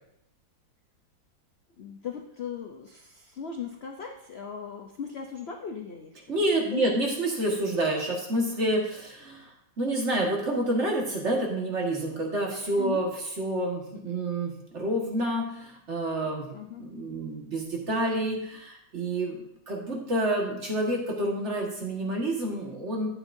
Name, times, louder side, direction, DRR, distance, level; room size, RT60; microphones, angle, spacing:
voice 1, 1.8-6.4 6.6-6.9 12.8-13.0 16.5-16.8, left 7 dB, 75° left, 3 dB, 0.5 m, -38 dB
voice 2, 6.3-9.5 9.8-13.1 13.4-16.5 16.8-23.1, right 1 dB, 40° right, -1 dB, 1.8 m, -28 dB
12.0 x 8.9 x 2.6 m, 0.79 s
omnidirectional pair, 2.0 m